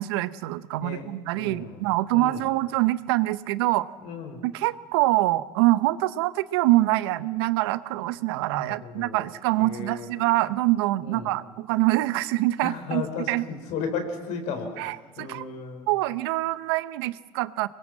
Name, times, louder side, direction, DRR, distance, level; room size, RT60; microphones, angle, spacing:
voice 1, 0.0-3.9 4.4-13.0 13.3-13.4 14.8-15.5 15.9-17.7, right 18 dB, 90° right, 15 dB, 0.8 m, -25 dB
voice 2, 0.8-1.8 2.1-2.5 4.0-4.4 8.5-9.2 9.6-10.1 11.0-11.4 12.6-15.9, left 5 dB, 75° left, 6 dB, 4.5 m, -35 dB
25.0 x 21.0 x 7.5 m, 1.2 s
supercardioid pair, 85°, 13 cm